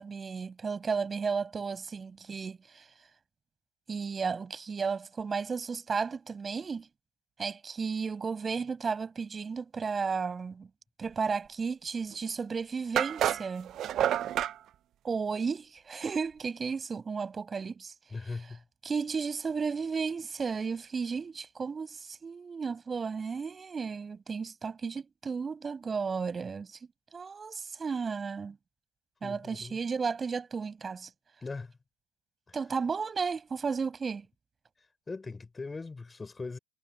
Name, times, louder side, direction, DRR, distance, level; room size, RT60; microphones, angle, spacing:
voice 1, 0.0-2.9 3.9-6.9 7.4-10.7 11.0-13.7 15.0-17.9 18.8-26.8 27.1-28.6 29.2-31.1 32.5-34.3, right 5 dB, 25° right, 7.5 m, -33 dB
sound 1, 12.1-12.2 13.0-14.6, right 11 dB, 45° right, 0.6 m, -29 dB
voice 2, 18.1-18.6 29.2-29.8 31.4-31.7 32.5-32.6 35.1-36.6, left 3 dB, 15° left, 5.9 m, -40 dB
supercardioid pair, 115°, 0 cm